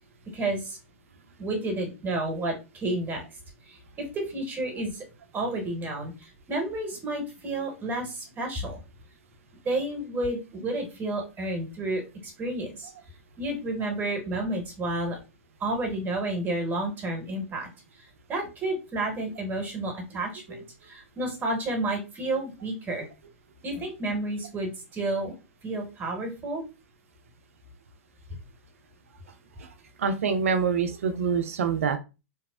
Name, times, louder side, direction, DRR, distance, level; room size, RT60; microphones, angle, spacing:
voice 1, 0.3-0.8 1.4-3.2 3.7-5.0 5.3-8.8 9.6-12.9 13.4-15.2 15.6-17.7 18.0-23.1 23.6-25.3 25.6-26.6, right 2 dB, 25° right, 2 dB, 1.0 m, -31 dB
voice 2, 30.0-32.0, right 6 dB, 75° right, 8 dB, 0.5 m, -26 dB
2.8 x 2.0 x 2.3 m, 0.28 s
hypercardioid pair, 100°, 8 cm